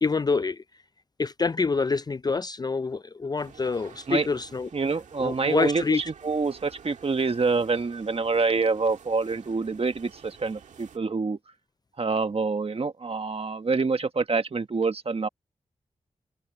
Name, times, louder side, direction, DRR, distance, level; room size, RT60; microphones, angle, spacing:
voice 1, 0.0-0.6 1.2-4.7 5.2-6.0, left 4 dB, 35° left, 0.4 m, -26 dB
sound 1, 3.4-11.0, right 7 dB, 90° right, 2.0 m, -51 dB
voice 2, 4.7-11.4 12.0-15.3, right 4 dB, 55° right, 1.4 m, -26 dB
cardioid pair, 40°, 12 cm